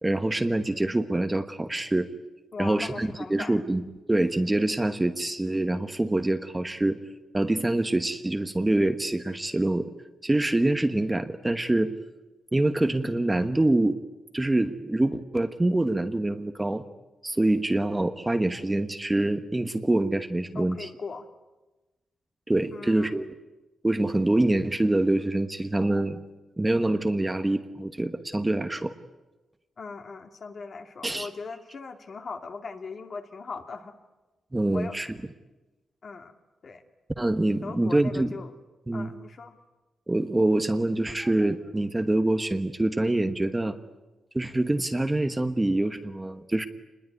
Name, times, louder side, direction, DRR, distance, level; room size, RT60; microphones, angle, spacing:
voice 1, 0.0-2.1 2.6-3.8 4.1-7.0 7.3-9.9 10.2-11.9 12.5-14.0 14.3-16.8 17.2-20.9 22.5-23.3 23.8-26.2 26.6-28.9 31.0-31.3 34.5-35.1 37.2-38.3 38.9-39.1 40.1-43.8 44.3-46.7, right 1 dB, 15° right, 8 dB, 1.2 m, -25 dB
voice 2, 2.5-3.7 20.5-21.3 22.7-23.2 29.8-34.0 34.7-35.0 36.0-36.4 36.6-36.8 37.6-38.5 38.9-39.6, left 4 dB, 45° left, 5 dB, 2.5 m, -39 dB
28.0 x 21.0 x 9.5 m, 1.1 s
wide cardioid pair, 130°, 0 cm